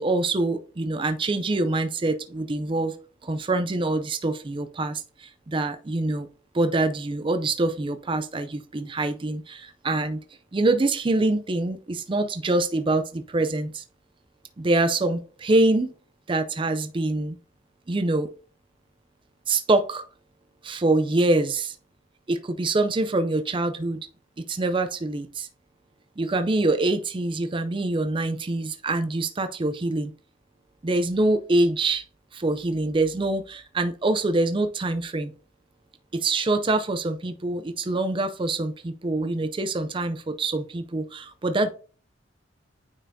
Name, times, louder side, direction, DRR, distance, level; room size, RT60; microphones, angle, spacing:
voice 1, 0.0-2.9 3.2-6.3 6.5-10.2 10.5-13.8 14.6-15.9 16.3-17.4 17.9-18.3 19.5-20.0 20.6-21.8 22.3-24.0 24.5-25.5 26.2-30.1 30.8-32.0 32.3-35.3 36.1-41.7, right 2 dB, 25° right, 9 dB, 0.4 m, -25 dB
9.1 x 4.5 x 2.7 m, 0.38 s
head